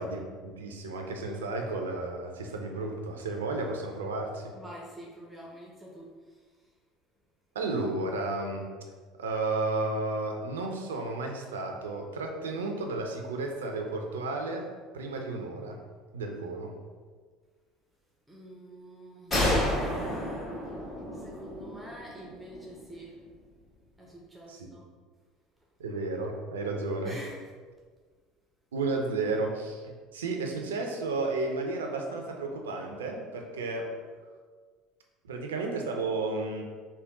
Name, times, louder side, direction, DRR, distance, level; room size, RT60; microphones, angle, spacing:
voice 1, 0.0-4.5 7.5-8.7 9.2-14.7 14.9-15.8 16.1-16.7 24.5-24.7 25.8-27.2 28.7-34.0 35.2-36.6, right 3 dB, 80° right, 2 dB, 0.5 m, -33 dB
voice 2, 4.5-6.5 18.3-19.7 21.1-23.2 24.0-24.9 27.0-27.4, right 1 dB, 10° right, -3 dB, 0.6 m, -46 dB
sound 1, 19.3-22.8, left 1 dB, 30° left, 1.5 m, -30 dB
3.5 x 2.2 x 3.7 m, 1.5 s
hypercardioid pair, 65°, 0 cm